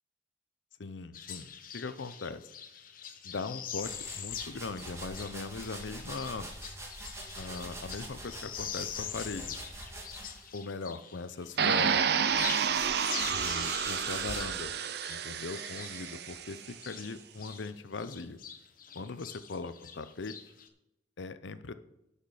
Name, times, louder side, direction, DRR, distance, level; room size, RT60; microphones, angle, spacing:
voice 1, 0.8-2.4 3.2-6.5 7.4-9.6 10.5-12.1 13.3-14.7 15.1-18.4 18.9-20.4 21.2-21.7, left 4 dB, 80° left, 13 dB, 0.7 m, -40 dB
sound 1, 1.1-11.3 11.6-17.7 18.0-20.7, left 8 dB, 50° left, 0.9 m, -44 dB
sound 2, 3.8-10.6 11.4-14.6, right 1 dB, 15° right, 2.1 m, -44 dB
sound 3, 11.6-16.6, right 7 dB, 60° right, 0.6 m, -30 dB
11.0 x 6.5 x 5.0 m, 0.88 s
head